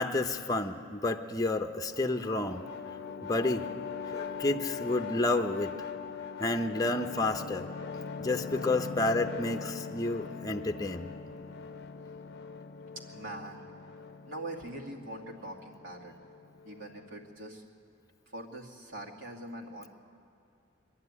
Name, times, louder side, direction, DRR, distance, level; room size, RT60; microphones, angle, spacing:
voice 1, 0.0-2.7 3.1-3.7 4.1-5.7 6.4-11.1, left 2 dB, 20° left, 5 dB, 0.7 m, -30 dB
sound 1, 1.9-17.3, left 5 dB, 55° left, 0.6 m, -41 dB
voice 2, 13.1-13.6 14.2-16.1 16.6-17.6 18.3-19.9, right 1 dB, 70° right, -1 dB, 2.4 m, -43 dB
24.0 x 11.5 x 9.6 m, 2.6 s
head